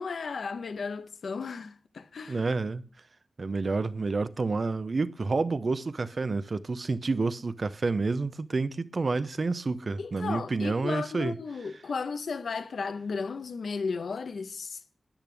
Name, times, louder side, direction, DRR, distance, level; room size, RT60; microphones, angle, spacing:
voice 1, 0.0-2.4 10.0-14.8, left 5 dB, 85° left, 1.0 m, -34 dB
voice 2, 2.3-2.8 3.4-11.3, right 3 dB, 50° right, 0.7 m, -29 dB
13.0 x 10.5 x 3.5 m
wide cardioid pair, 115°, 0 cm